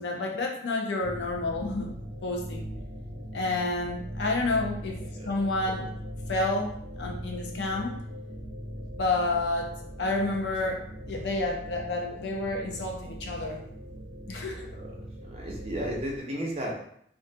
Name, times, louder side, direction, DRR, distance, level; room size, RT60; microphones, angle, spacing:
voice 1, 0.0-2.7 3.3-5.9 6.3-6.7 7.0-8.0 9.0-9.7 10.0-13.6 14.3-14.8, left 2 dB, 80° left, 1 dB, 0.5 m, -30 dB
sound 1, 1.0-16.2, equal, 85° right, 0.5 m, -40 dB
voice 2, 14.4-14.9 15.2-16.8, equal, 35° right, -3 dB, 0.5 m, -34 dB
2.4 x 2.2 x 2.6 m, 0.68 s
head